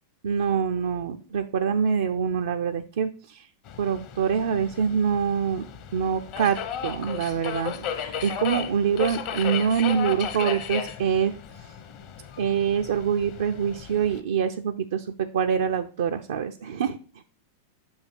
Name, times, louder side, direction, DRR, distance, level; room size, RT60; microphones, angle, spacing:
voice 1, 0.2-3.5 3.8-11.3 12.4-17.0, right 7 dB, 60° right, 5 dB, 0.4 m, -25 dB
Subway metro underground, 3.7-14.2, left 8 dB, 45° left, 0.8 m, -35 dB
7.1 x 2.7 x 5.7 m, 0.38 s
figure-of-eight pair, 90°, 0 cm